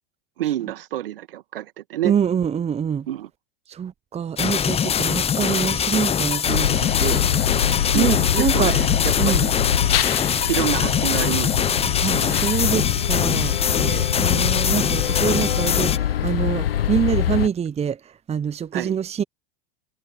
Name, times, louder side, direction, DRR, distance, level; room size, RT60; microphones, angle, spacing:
voice 1, 0.4-2.1 3.1-3.3 7.9-9.5 10.5-11.7 12.1-12.4 13.8-14.1 18.7-18.9, right 13 dB, 70° right, 2.4 m, -28 dB
voice 2, 2.0-3.1 3.7-7.2 7.9-8.7 9.2-9.4 12.0-13.5 14.1-19.2, right 8 dB, 20° right, 1.1 m, -25 dB
sound 1, 4.4-16.0, left 8 dB, 20° left, 0.9 m, -23 dB
sound 2, 6.5-17.5, left 10 dB, 75° left, 0.9 m, -24 dB
figure-of-eight pair, 80°, 29 cm